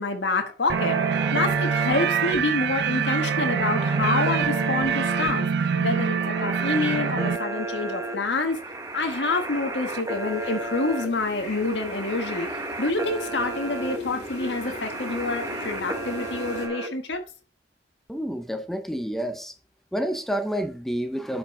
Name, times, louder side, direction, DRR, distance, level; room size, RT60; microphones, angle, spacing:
voice 1, 0.0-8.6 8.9-12.5 12.8-17.2, left 3 dB, 90° left, 1.3 m, -27 dB
sound 1, 0.7-16.9, right 2 dB, 20° right, 1.0 m, -34 dB
sound 2, 0.7-7.4, right 6 dB, 65° right, 0.4 m, -25 dB
sound 3, 7.4-16.7, left 2 dB, 45° left, 2.8 m, -40 dB
voice 2, 18.1-19.5 19.9-21.4, equal, ahead, 0.6 m, -29 dB
11.5 x 5.2 x 3.7 m
head